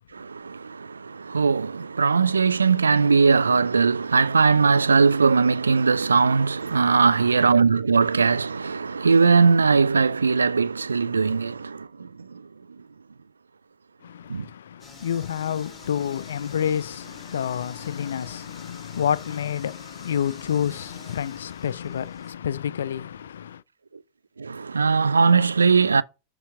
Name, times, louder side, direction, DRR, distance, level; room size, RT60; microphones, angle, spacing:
voice 1, 0.1-12.1 14.3-14.5 24.4-26.0, right 5 dB, 75° right, 0.3 m, -20 dB
voice 2, 14.0-23.6, left 8 dB, 65° left, 0.3 m, -29 dB
sound 1, 14.8-22.3, left 2 dB, 10° left, 2.1 m, -48 dB
7.0 x 3.4 x 6.0 m
figure-of-eight pair, 90°, 0 cm